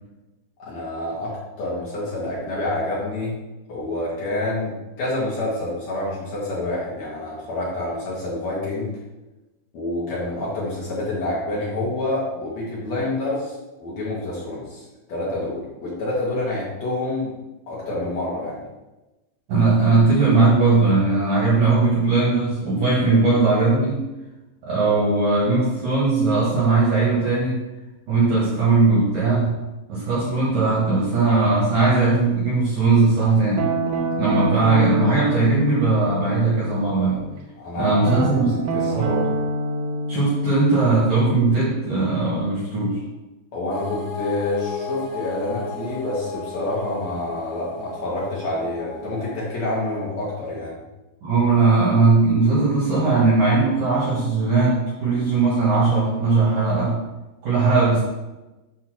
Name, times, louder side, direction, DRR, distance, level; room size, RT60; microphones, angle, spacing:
voice 1, 0.6-3.4 3.7-9.0 9.7-13.5 13.8-17.3 17.7-18.6 37.6-38.4 38.7-39.2 43.5-50.7, left 2 dB, 75° left, -7 dB, 1.6 m, -28 dB
voice 2, 19.5-24.0 24.6-27.6 28.1-29.6 29.9-33.7 34.2-37.2 37.8-38.6 39.0-39.1 40.1-43.0 51.2-57.0 57.4-58.0, right 3 dB, 65° right, -6 dB, 2.1 m, -19 dB
Guitar, 33.6-37.4 38.0-42.8, right 2 dB, 85° right, 3.5 m, -27 dB
sound 1, 43.7-49.3, left 3 dB, 45° left, 1.6 m, -33 dB
8.2 x 2.7 x 6.1 m, 1.0 s
omnidirectional pair, 5.6 m